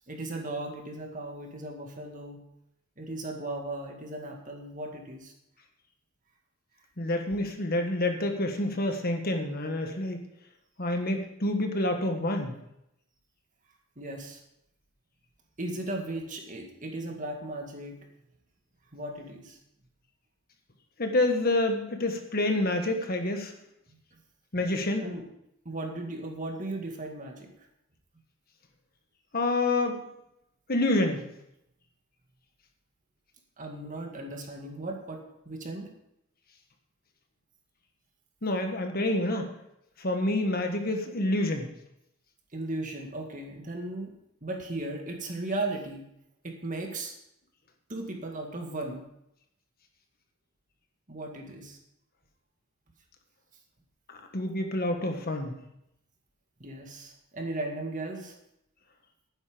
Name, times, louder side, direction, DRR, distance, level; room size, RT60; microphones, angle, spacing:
voice 1, 0.1-2.4 3.0-5.3 14.0-14.4 15.6-18.0 18.9-19.6 23.9-24.0 25.0-25.2 25.7-27.5 33.6-35.9 42.5-44.1 44.4-46.1 46.4-47.1 47.9-49.1 51.1-51.8 56.6-58.3, right 2 dB, 40° right, 2 dB, 2.0 m, -36 dB
voice 2, 7.0-10.2 10.8-12.5 21.0-23.5 24.5-25.1 29.3-30.0 30.7-31.2 38.4-39.5 40.0-41.7 54.1-55.5, left 1 dB, 45° left, 5 dB, 1.5 m, -28 dB
11.5 x 9.9 x 5.1 m, 0.79 s
head